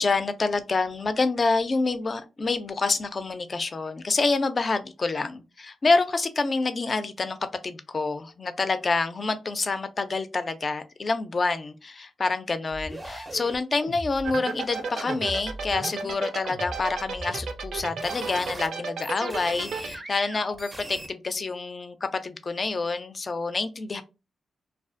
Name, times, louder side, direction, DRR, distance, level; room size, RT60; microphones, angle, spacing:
voice 1, 0.0-7.4 7.6-24.0, left 3 dB, 40° left, 11 dB, 0.3 m, -27 dB
sound 1, 12.7-16.1 16.4-18.7 19.0-21.1, right 1 dB, 20° right, 0.4 m, -40 dB
sound 2, 14.2-19.9, right 5 dB, 80° right, 0.4 m, -32 dB
Screaming, 14.7-15.3 16.7-17.0, left 3 dB, 90° left, 0.6 m, -45 dB
2.4 x 2.3 x 2.4 m, 0.28 s
cardioid pair, 100°, 0 cm